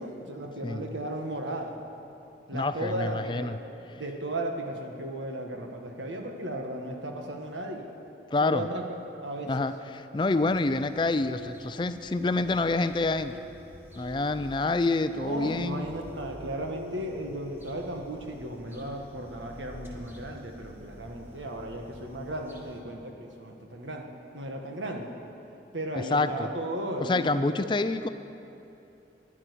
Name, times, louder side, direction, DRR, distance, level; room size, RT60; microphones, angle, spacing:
voice 1, 0.0-1.8 2.5-3.6 4.0-7.9 8.4-9.5 15.2-24.1 24.3-25.1 25.7-27.5 27.8-27.9, right 1 dB, 90° right, 2 dB, 1.7 m, -35 dB
voice 2, 0.6-0.9 2.5-3.6 8.3-8.7 9.5-13.4 13.9-15.9 26.0-26.5 27.0-28.1, left 2 dB, 25° left, 11 dB, 0.4 m, -27 dB
sound 1, 10.1-22.8, equal, 10° right, 1.4 m, -50 dB
sound 2, 11.0-16.9, right 1 dB, 35° right, 1.1 m, -48 dB
11.0 x 10.5 x 9.9 m, 2.9 s
head